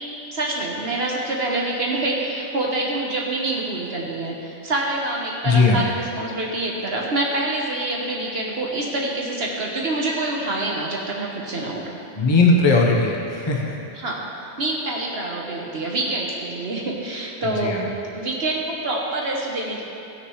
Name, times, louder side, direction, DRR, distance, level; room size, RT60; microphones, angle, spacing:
voice 1, 0.3-11.8 13.9-19.8, right 2 dB, 60° right, -2 dB, 1.4 m, -26 dB
voice 2, 5.4-5.8 12.2-13.7 17.4-17.8, left 3 dB, 25° left, -2 dB, 1.0 m, -18 dB
17.0 x 6.6 x 3.2 m, 2.8 s
omnidirectional pair, 1.2 m